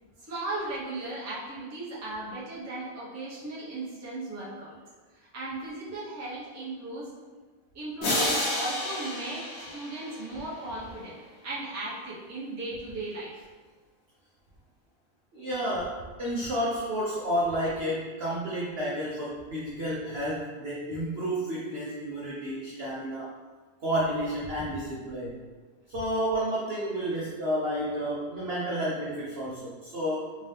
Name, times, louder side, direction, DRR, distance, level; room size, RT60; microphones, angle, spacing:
voice 1, 0.2-4.8 5.1-7.1 7.7-13.5, right 2 dB, 20° right, -7 dB, 0.5 m, -37 dB
sound 1, 8.0-10.7, left 1 dB, 90° left, 1.4 m, -30 dB
voice 2, 15.3-23.3 23.8-25.4 25.9-30.4, equal, 65° right, -5 dB, 0.6 m, -31 dB
3.5 x 2.8 x 3.3 m, 1.3 s
omnidirectional pair, 1.7 m